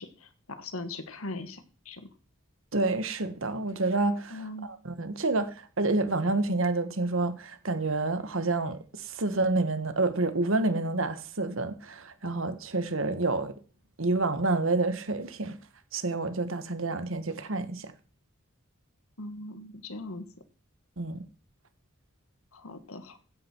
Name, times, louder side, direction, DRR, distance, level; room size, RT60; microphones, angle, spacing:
voice 1, 0.0-2.1 4.3-4.7 19.2-20.3 22.5-23.2, left 2 dB, 75° left, 1.8 m, -40 dB
voice 2, 2.7-13.5 14.0-15.6 15.9-17.9 21.0-21.2, right 2 dB, 65° right, 1.4 m, -28 dB
16.5 x 10.0 x 4.6 m
head